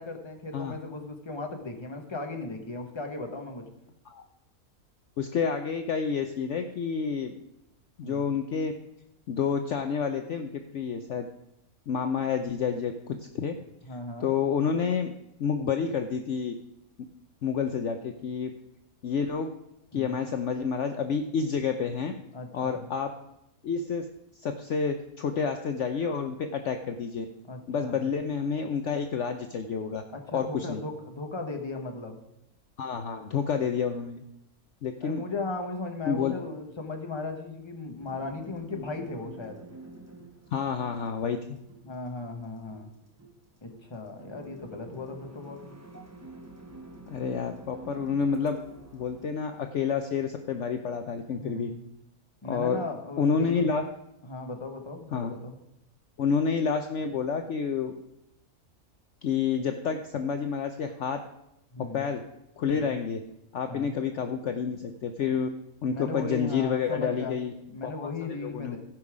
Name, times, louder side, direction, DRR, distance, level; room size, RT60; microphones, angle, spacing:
voice 1, 0.0-3.6 8.0-8.2 13.8-14.3 19.9-20.2 22.3-22.9 27.5-28.1 30.1-32.2 35.0-39.6 41.8-42.9 43.6-45.6 51.4-51.8 52.4-53.6 54.2-55.6 61.7-62.0 62.7-62.9 63.7-63.9 65.9-67.3 67.7-68.8, left 3 dB, 20° left, 4 dB, 1.2 m, -37 dB
voice 2, 5.2-7.3 8.0-8.7 9.3-11.3 11.9-13.6 14.2-15.1 15.4-16.5 17.4-18.5 19.0-19.5 19.9-22.1 22.5-23.1 23.6-24.0 24.4-27.3 27.7-30.0 30.3-30.8 32.8-34.2 34.8-35.2 36.1-36.3 40.5-41.6 47.1-48.6 48.9-51.7 52.4-52.8 53.2-53.9 55.1-55.3 56.2-57.9 59.2-61.2 61.9-62.2 62.6-63.2 63.5-65.5 65.8-67.5 67.8-68.1 68.4-68.8, left 6 dB, 60° left, 6 dB, 0.9 m, -29 dB
sound 1, 38.0-49.3, right 2 dB, 15° right, 0.8 m, -48 dB
15.5 x 5.5 x 4.9 m, 0.85 s
omnidirectional pair, 1.5 m